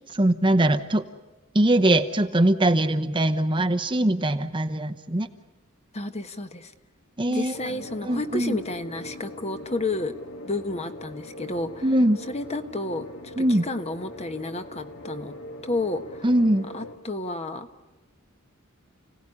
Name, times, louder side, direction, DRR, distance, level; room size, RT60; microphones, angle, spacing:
voice 1, 0.1-1.0 1.5-5.3 7.2-7.5 8.0-8.6 11.8-12.2 13.4-13.6 16.2-16.7, right 1 dB, 20° right, 6 dB, 0.9 m, -21 dB
voice 2, 5.9-6.7 7.3-10.1 10.4-11.9 12.3-15.3 15.6-16.3 16.7-17.7, left 2 dB, 30° left, 8 dB, 1.2 m, -31 dB
sound 1, 7.5-17.0, left 1 dB, 65° left, 2.2 m, -41 dB
30.0 x 17.5 x 9.8 m, 1.1 s
head